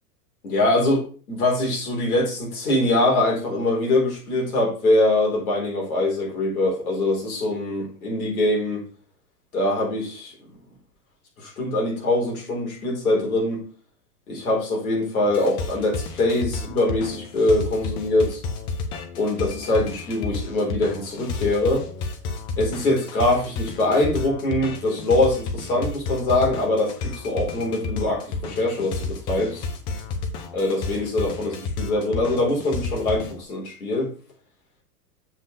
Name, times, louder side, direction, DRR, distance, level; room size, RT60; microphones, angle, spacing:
voice 1, 0.4-8.8 9.5-10.3 11.4-13.6 14.3-18.4 19.2-21.9 22.6-29.6 30.5-34.1, left 2 dB, 65° left, 4.1 m, -23 dB
sound 1, 15.3-33.4, left 4 dB, 10° left, 0.3 m, -31 dB
7.5 x 5.2 x 3.8 m
figure-of-eight pair, 100°, 47 cm